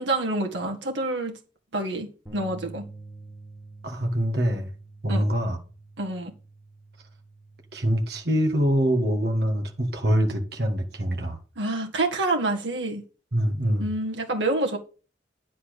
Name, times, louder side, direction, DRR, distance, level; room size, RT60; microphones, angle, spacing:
voice 1, 0.0-1.4 1.7-2.8 5.1-5.2 6.0-6.3 11.6-13.0 13.8-14.8, right 2 dB, 85° right, 1.8 m, -27 dB
sound 1, 2.3-8.5, right 3 dB, ahead, 2.1 m, -47 dB
voice 2, 3.8-4.7 5.0-5.6 7.7-11.4 13.3-13.9, equal, 60° right, 1.6 m, -24 dB
10.0 x 4.2 x 6.6 m
head